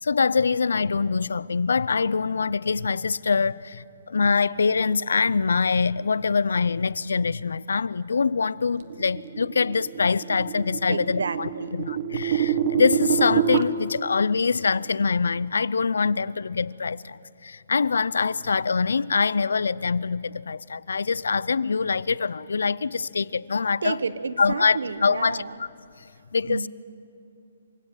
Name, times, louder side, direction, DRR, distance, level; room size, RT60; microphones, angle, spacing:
voice 1, 0.0-24.0 24.4-25.4 26.3-26.7, left 5 dB, 90° left, 0.6 m, -24 dB
sound 1, 8.9-13.6, right 8 dB, 45° right, 1.3 m, -26 dB
voice 2, 10.9-11.8 23.8-25.5 26.5-26.7, right 4 dB, 85° right, 1.1 m, -30 dB
26.5 x 17.0 x 9.1 m
hypercardioid pair, 160°, 0 cm